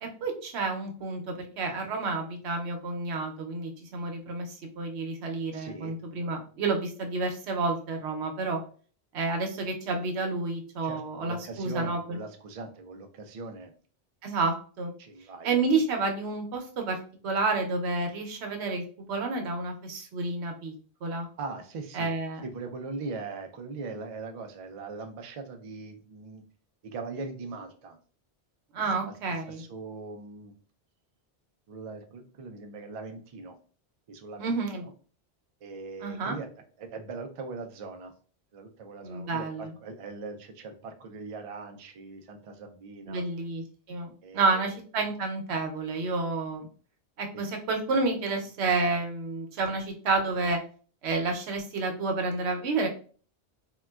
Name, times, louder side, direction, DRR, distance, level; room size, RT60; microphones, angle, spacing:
voice 1, 0.0-8.6 9.1-12.2 14.2-14.9 15.4-17.0 17.2-20.7 21.0-21.3 21.9-22.4 28.7-29.6 34.4-34.8 36.0-36.4 39.0-39.7 43.1-46.7 47.2-50.6 51.0-52.9, right 3 dB, 90° right, 3 dB, 0.9 m, -30 dB
voice 2, 5.5-5.9 10.8-13.7 15.0-15.5 21.4-22.1 22.4-26.4 26.8-28.0 29.0-29.1 29.5-30.5 31.7-33.6 34.1-34.5 34.8-34.9 35.6-36.5 36.8-38.1 38.5-43.2 44.2-44.8 47.3-47.4, right 4 dB, 60° right, 5 dB, 0.3 m, -40 dB
3.7 x 2.2 x 2.2 m, 0.42 s
omnidirectional pair, 1.1 m